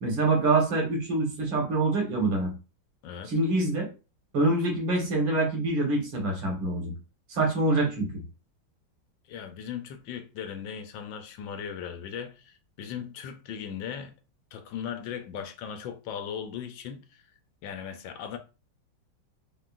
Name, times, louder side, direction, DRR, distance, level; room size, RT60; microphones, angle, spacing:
voice 1, 0.0-2.5 3.3-3.9 4.3-6.9 7.3-8.2, right 2 dB, 75° right, 2.1 m, -25 dB
voice 2, 9.3-14.1 14.5-17.2 17.6-18.4, left 8 dB, 80° left, 1.4 m, -38 dB
4.5 x 3.7 x 2.4 m
omnidirectional pair, 2.1 m